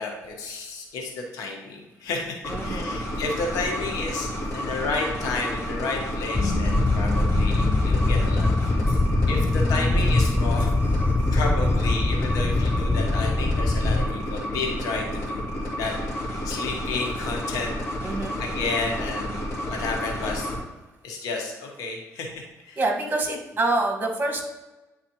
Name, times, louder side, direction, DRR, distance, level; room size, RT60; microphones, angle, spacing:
voice 1, 0.0-9.0 9.3-10.8 11.3-15.4 15.8-15.9 16.2-17.8 18.4-20.5 21.0-22.3 22.6-22.8, left 3 dB, 90° left, 1 dB, 1.1 m, -31 dB
sound 1, 2.4-20.6, left 1 dB, 50° left, 2.3 m, -31 dB
voice 2, 2.5-3.0 9.0-9.6 11.2-11.4 18.0-18.4 22.7-24.4, right 2 dB, 30° right, 1 dB, 1.7 m, -27 dB
sound 2, 6.3-14.1, left 2 dB, 15° left, 0.4 m, -22 dB
9.4 x 4.1 x 3.0 m, 1.1 s
cardioid pair, 90°, 6 cm